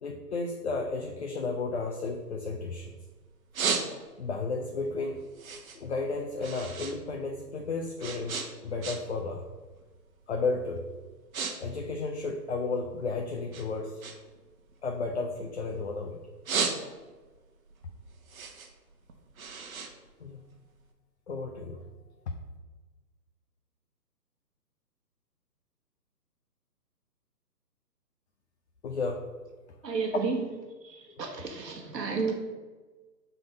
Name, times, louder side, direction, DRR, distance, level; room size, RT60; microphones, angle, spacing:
voice 1, 0.0-3.0 4.2-5.2 5.7-9.5 10.3-10.9 11.6-14.0 14.8-16.2 20.2-20.4 21.3-21.8 28.8-29.3 30.1-30.2, left 3 dB, 45° left, 3 dB, 0.5 m, -33 dB
sound 1, 1.8-2.9 3.3-4.4 4.8-7.0 7.3-9.3 9.6-9.9 10.5-10.7 11.0-11.5 11.8-13.0 13.5-15.8 16.2-17.3 17.7-20.8, right 5 dB, 55° right, 1.0 m, -35 dB
voice 2, 29.8-30.5 30.8-32.3, right 4 dB, 75° right, 3 dB, 1.2 m, -32 dB
5.7 x 3.9 x 5.1 m, 1.3 s
figure-of-eight pair, 145°, 49 cm